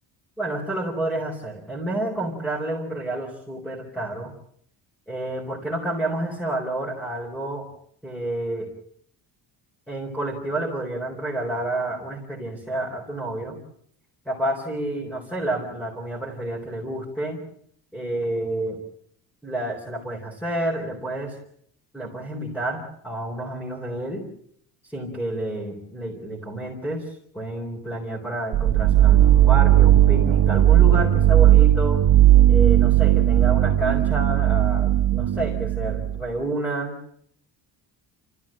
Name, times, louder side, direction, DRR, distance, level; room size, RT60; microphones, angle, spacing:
voice 1, 0.4-4.3 5.1-7.7 8.0-8.7 9.9-13.6 14.3-17.4 17.9-18.8 19.4-21.4 21.9-24.2 24.9-32.0 32.5-36.9, right 1 dB, 5° left, -2 dB, 4.0 m, -29 dB
sound 1, 28.5-36.2, right 12 dB, 60° right, 1.4 m, -17 dB
29.5 x 15.0 x 8.8 m, 0.68 s
cardioid pair, 170°, 43 cm